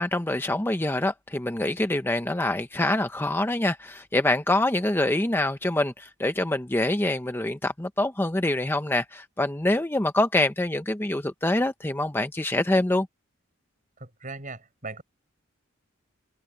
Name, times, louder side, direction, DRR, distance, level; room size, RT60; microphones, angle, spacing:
voice 1, 0.0-13.1, left 1 dB, 10° left, 0.7 m, -25 dB
voice 2, 14.0-15.0, right 3 dB, 40° right, 7.4 m, -39 dB
head